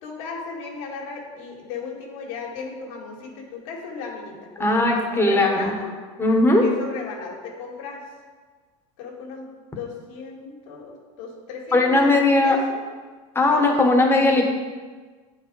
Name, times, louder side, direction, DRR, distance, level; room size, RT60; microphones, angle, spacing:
voice 1, 0.0-5.9 6.6-8.0 9.0-12.8 13.5-13.7, left 5 dB, 70° left, -1 dB, 1.9 m, -36 dB
voice 2, 4.6-5.7 6.2-6.6 11.7-12.6 13.3-14.4, left 2 dB, 15° left, 1 dB, 1.4 m, -18 dB
9.5 x 4.7 x 4.7 m, 1.4 s
supercardioid pair, 120°, 17 cm